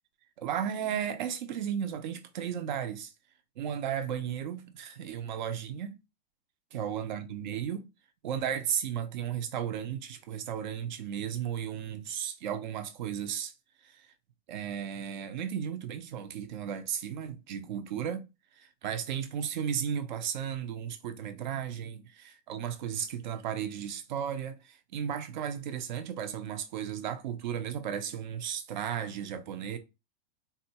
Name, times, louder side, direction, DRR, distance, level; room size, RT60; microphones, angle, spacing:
voice 1, 0.4-3.1 3.6-6.0 6.7-7.9 8.2-13.5 13.8-14.1 14.5-18.3 18.6-29.8, right 8 dB, 50° right, 0.5 m, -34 dB
3.9 x 2.2 x 2.8 m
supercardioid pair, 165°, 30 cm